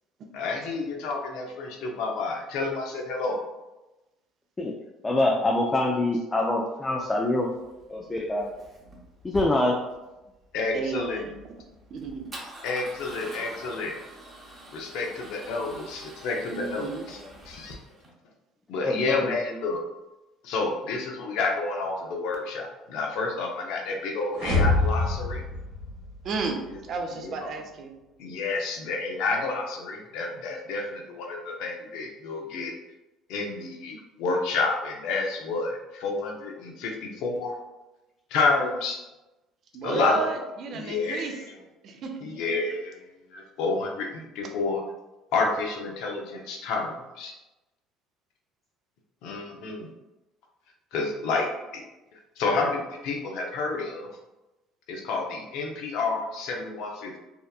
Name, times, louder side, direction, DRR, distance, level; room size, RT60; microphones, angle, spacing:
voice 1, 0.3-3.4 10.5-11.2 12.6-14.0 14.7-17.2 17.5-17.8 18.7-19.8 20.4-25.4 27.2-27.3 28.2-32.7 33.3-37.5 38.3-39.0 39.8-40.2 40.7-41.4 42.2-44.8 45.3-47.3 49.2-49.9 50.9-51.5 51.7-51.8 52.4-54.1 54.9-57.2, left 3 dB, 75° left, 1 dB, 0.5 m, -29 dB
voice 2, 5.0-7.5 7.9-8.5 9.2-9.8 18.8-19.3, left 2 dB, 20° left, 0 dB, 0.3 m, -25 dB
Male speech man speaking / Car / Engine starting, 7.0-18.1, right 1 dB, 30° right, 0.8 m, -45 dB
voice 3, 10.7-11.4 11.9-12.3 16.5-17.1 26.2-28.0 39.7-41.4 41.8-42.2, right 4 dB, 55° right, 3 dB, 0.4 m, -32 dB
sound 1, 24.3-26.5, left 2 dB, 75° right, 0.9 m, -25 dB
2.8 x 2.1 x 2.3 m, 1.0 s
supercardioid pair, 90°, 0 cm